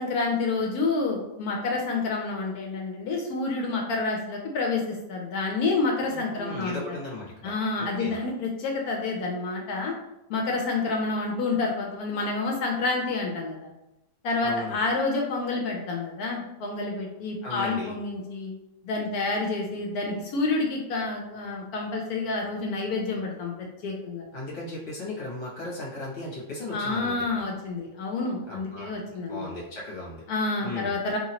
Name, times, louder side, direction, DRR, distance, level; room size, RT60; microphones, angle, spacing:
voice 1, 0.0-6.8 7.4-9.9 10.3-13.7 14.2-18.5 18.8-23.5 23.8-24.2 26.7-29.5 30.3-31.2, left 3 dB, 75° left, 0 dB, 1.0 m, -28 dB
voice 2, 6.1-8.2 14.4-14.8 17.4-17.9 24.3-27.2 28.5-28.9 29.3-30.2 30.6-30.9, left 2 dB, 50° left, -6 dB, 1.4 m, -36 dB
2.8 x 2.8 x 2.8 m, 0.89 s
omnidirectional pair, 1.7 m